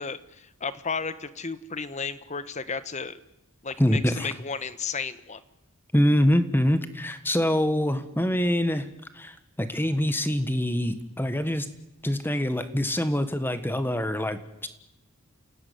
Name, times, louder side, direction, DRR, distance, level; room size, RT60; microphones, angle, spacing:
voice 1, 0.0-3.2 3.6-5.4 12.3-12.4, left 5 dB, 35° left, 14 dB, 1.3 m, -33 dB
voice 2, 3.8-4.3 5.9-8.9 9.1-11.7 12.0-14.7, equal, 10° left, 10 dB, 1.5 m, -25 dB
29.0 x 17.0 x 9.4 m, 0.91 s
head